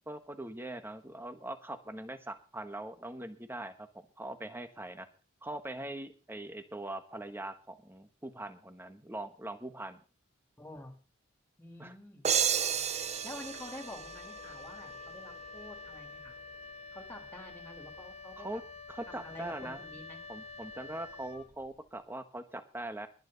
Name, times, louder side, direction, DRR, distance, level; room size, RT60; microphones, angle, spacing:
voice 1, 0.1-3.9 4.2-5.1 5.4-10.0 11.8-11.9 18.4-18.6 18.9-19.8 20.3-23.1, right 1 dB, 10° right, 9 dB, 1.3 m, -42 dB
voice 2, 10.6-10.9 11.6-12.3 13.2-16.4 16.9-18.6 19.1-20.2, left 1 dB, 10° left, 3 dB, 3.3 m, -48 dB
sound 1, 12.2-14.9, right 8 dB, 30° right, 0.6 m, -32 dB
Wind instrument woodwind instrument, 12.5-21.9, left 3 dB, 30° left, 0.8 m, -48 dB
21.0 x 9.1 x 4.0 m, 0.36 s
head